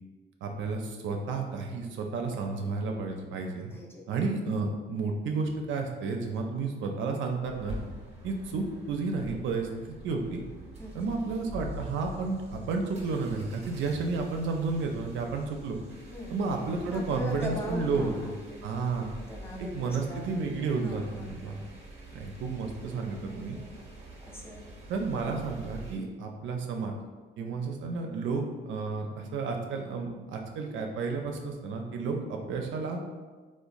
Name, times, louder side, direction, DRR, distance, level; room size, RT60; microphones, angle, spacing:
voice 1, 0.4-3.7 4.1-7.8 8.2-10.4 10.9-15.8 16.3-18.3 18.6-19.1 19.6-21.6 22.1-23.6 24.9-26.9 27.4-33.0, right 4 dB, 75° right, 2 dB, 0.4 m, -32 dB
voice 2, 3.7-4.2 10.8-11.2 16.1-16.3 16.9-18.6 18.9-20.3 20.8-21.7 22.9-23.8 24.2-24.6 27.4-27.5, left 1 dB, 10° left, -2 dB, 0.5 m, -41 dB
sound 1, 7.4-26.0, right 1 dB, 35° right, 0.7 m, -45 dB
2.9 x 2.1 x 2.5 m, 1.3 s
cardioid pair, 90°, 20 cm